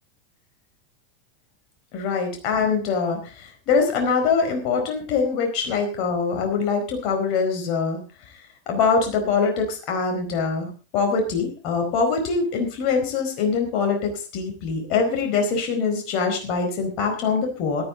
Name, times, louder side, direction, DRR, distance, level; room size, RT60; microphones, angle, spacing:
voice 1, 1.9-8.0 8.7-17.8, left 5 dB, 45° left, 3 dB, 4.4 m, -23 dB
17.0 x 12.0 x 3.8 m, 0.34 s
figure-of-eight pair, 85°, 0 cm